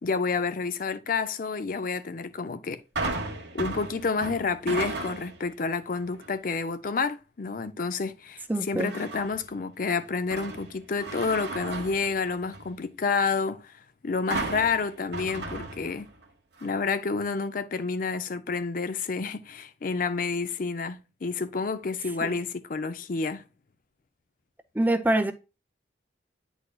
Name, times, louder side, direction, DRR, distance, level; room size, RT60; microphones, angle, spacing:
voice 1, 0.0-2.8 3.5-16.1 16.6-23.4, left 4 dB, 50° left, 0.5 m, -29 dB
sound 1, 3.0-5.5 6.0-6.3 8.8-9.5 9.9-12.8 14.3-16.2 16.6-16.7, right 3 dB, 65° right, 1.2 m, -35 dB
voice 2, 8.5-8.9 22.2-22.3 24.7-25.3, right 1 dB, 10° right, 0.5 m, -25 dB
9.8 x 4.0 x 2.4 m
head